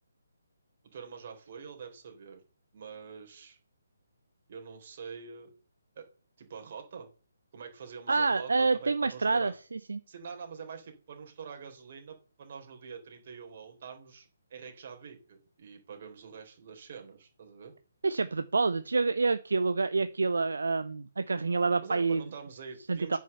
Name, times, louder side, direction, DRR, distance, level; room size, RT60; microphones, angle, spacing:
voice 1, 0.9-2.4 2.7-3.6 4.5-5.5 6.0-6.1 6.4-7.1 7.5-9.5 10.1-17.7 21.8-23.2, right 6 dB, 45° right, 3 dB, 3.7 m, -45 dB
voice 2, 8.1-10.0 18.0-22.2 22.9-23.2, right 4 dB, 70° right, 13 dB, 0.7 m, -27 dB
9.5 x 6.3 x 6.7 m, 0.39 s
figure-of-eight pair, 140°, 0 cm